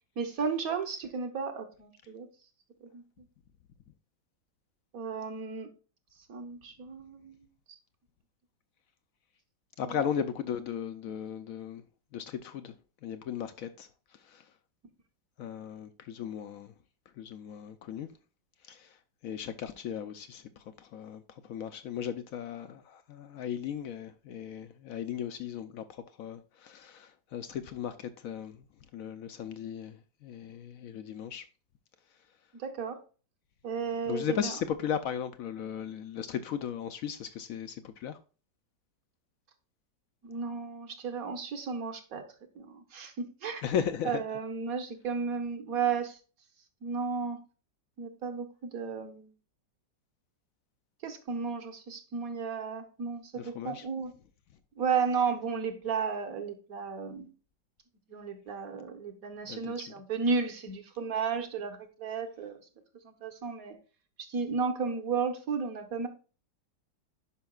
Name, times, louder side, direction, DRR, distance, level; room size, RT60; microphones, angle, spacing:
voice 1, 0.2-2.3 2.8-3.0 4.9-5.7 6.3-7.5 9.8-10.0 32.6-33.0 33.6-34.5 40.2-42.2 42.5-43.6 44.0-46.2 46.8-47.4 48.0-49.3 51.0-54.1 54.8-57.3 58.1-62.6 63.0-63.8 64.2-66.1, right 5 dB, 55° right, 1.4 m, -33 dB
voice 2, 9.8-11.8 12.1-12.7 13.0-14.5 15.4-16.7 17.2-18.1 18.6-19.0 19.2-28.6 28.9-31.4 34.1-38.2 43.6-44.2 53.4-53.9 59.5-59.8, left 8 dB, 75° left, 0.8 m, -36 dB
11.5 x 5.2 x 2.3 m
omnidirectional pair, 2.0 m